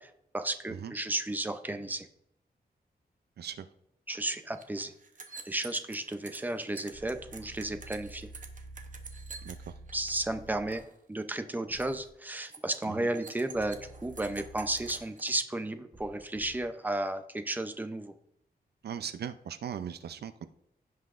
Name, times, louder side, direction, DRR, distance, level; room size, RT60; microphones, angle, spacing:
voice 1, 0.0-2.1 4.1-4.9 5.5-8.3 9.9-10.8 11.1-18.1, right 1 dB, 10° right, 8 dB, 0.6 m, -33 dB
sound 1, 4.1-4.2 4.4-10.2 10.4-10.9 11.2-11.5 11.8-12.1 12.4-15.3, right 4 dB, 50° right, 0.9 m, -48 dB
sound 2, 6.9-10.7 11.7-12.0 13.5-14.9 15.9-16.6, right 2 dB, 25° right, 1.1 m, -49 dB
voice 2, 9.4-9.7 12.8-13.1 18.8-20.5, right 8 dB, 75° right, 11 dB, 0.5 m, -39 dB
16.0 x 5.6 x 2.5 m, 0.76 s
wide cardioid pair, 155°, 17 cm